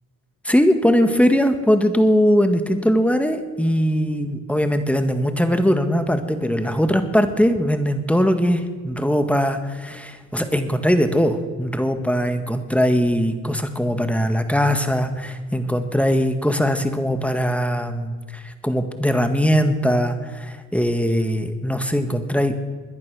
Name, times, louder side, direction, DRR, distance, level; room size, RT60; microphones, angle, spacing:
voice 1, 0.5-22.6, equal, 5° left, 8 dB, 1.7 m, -20 dB
21.5 x 10.5 x 6.3 m, 1.6 s
cardioid pair, 90°, 30 cm